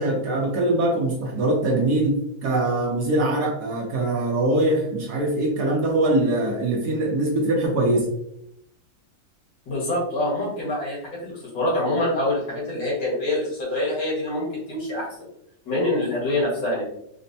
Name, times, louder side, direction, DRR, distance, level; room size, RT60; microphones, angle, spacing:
voice 1, 0.0-8.1, right 1 dB, 65° right, -1 dB, 1.1 m, -22 dB
voice 2, 9.7-15.1 15.7-16.8, left 1 dB, 70° left, -6 dB, 2.2 m, -25 dB
4.2 x 2.1 x 2.6 m, 0.76 s
omnidirectional pair, 2.1 m